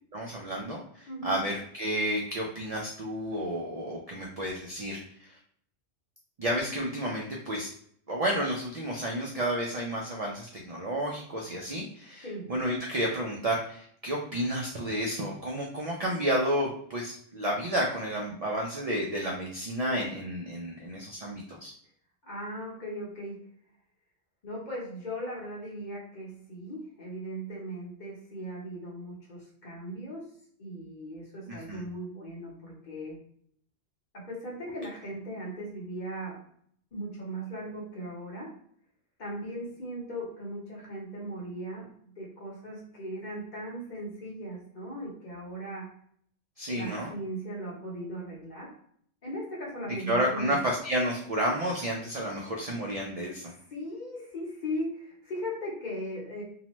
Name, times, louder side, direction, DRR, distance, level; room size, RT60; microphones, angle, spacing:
voice 1, 0.1-5.4 6.4-7.7 8.1-21.7 31.5-31.8 46.6-47.1 50.1-53.5, equal, 75° right, -2 dB, 0.3 m, -31 dB
voice 2, 1.1-1.4 12.2-12.5 22.2-23.4 24.4-30.3 30.6-33.2 34.1-36.4 36.9-38.5 39.2-41.9 42.2-45.9 46.7-48.7 49.2-50.6 53.7-56.4, equal, 45° left, -3 dB, 0.9 m, -38 dB
2.8 x 2.1 x 2.9 m, 0.63 s
omnidirectional pair, 1.2 m